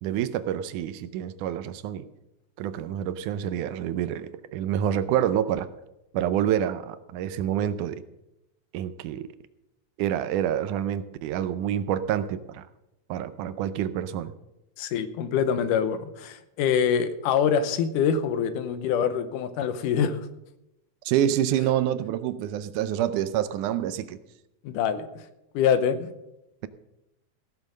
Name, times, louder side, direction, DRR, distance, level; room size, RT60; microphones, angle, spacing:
voice 1, 0.0-2.1 2.6-5.7 6.1-8.0 8.7-9.3 10.0-12.6 13.1-14.3 21.1-24.2, right 10 dB, 80° right, 13 dB, 2.1 m, -27 dB
voice 2, 14.8-20.2 24.6-25.2 25.5-26.1, left 7 dB, 85° left, 11 dB, 2.4 m, -25 dB
15.5 x 7.3 x 6.4 m, 0.89 s
omnidirectional pair, 3.7 m